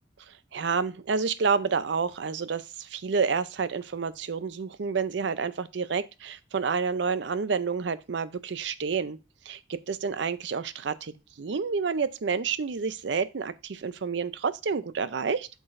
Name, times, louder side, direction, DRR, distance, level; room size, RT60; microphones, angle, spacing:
voice 1, 0.3-9.2 9.5-15.5, right 5 dB, 75° right, 0.5 m, -29 dB
8.0 x 6.0 x 2.5 m
head